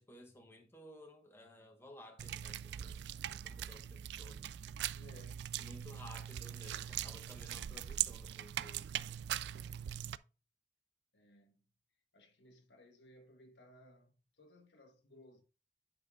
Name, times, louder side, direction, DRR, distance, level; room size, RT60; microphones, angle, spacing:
voice 1, 0.0-3.0 3.3-4.4 5.6-9.1, left 1 dB, 15° left, 1.1 m, -56 dB
sound 1, 2.2-10.2, right 11 dB, 70° right, 0.3 m, -41 dB
voice 2, 4.9-5.5 9.6-10.3 11.1-11.7 12.1-15.4, left 1 dB, 85° left, 1.5 m, -61 dB
10.5 x 5.8 x 2.4 m
head